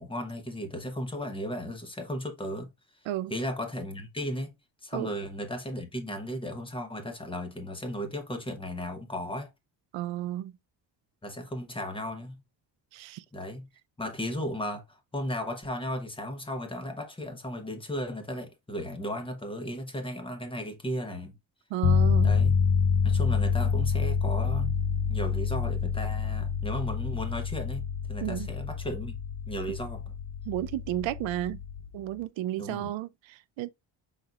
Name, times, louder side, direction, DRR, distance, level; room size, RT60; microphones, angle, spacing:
voice 1, 0.0-2.7 3.3-4.5 4.8-9.5 11.2-12.4 13.3-13.7 14.0-21.3 22.2-22.6 23.0-24.8 25.1-29.2 29.5-30.1 32.6-32.9, equal, 10° left, 0.9 m, -35 dB
voice 2, 9.9-10.5 12.9-13.2 21.7-22.4 28.2-28.5 30.5-31.6 31.9-33.7, right 14 dB, 80° right, 0.5 m, -32 dB
sound 1, 21.8-32.0, left 6 dB, 65° left, 0.7 m, -27 dB
5.7 x 4.0 x 2.3 m
cardioid pair, 165°, 46 cm